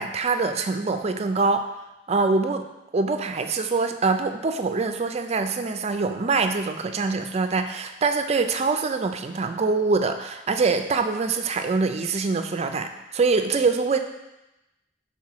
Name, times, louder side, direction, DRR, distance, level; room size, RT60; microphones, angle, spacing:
voice 1, 0.0-1.7 2.1-2.7 2.9-14.0, right 4 dB, 35° right, 7 dB, 0.4 m, -24 dB
5.8 x 4.0 x 4.8 m, 0.96 s
head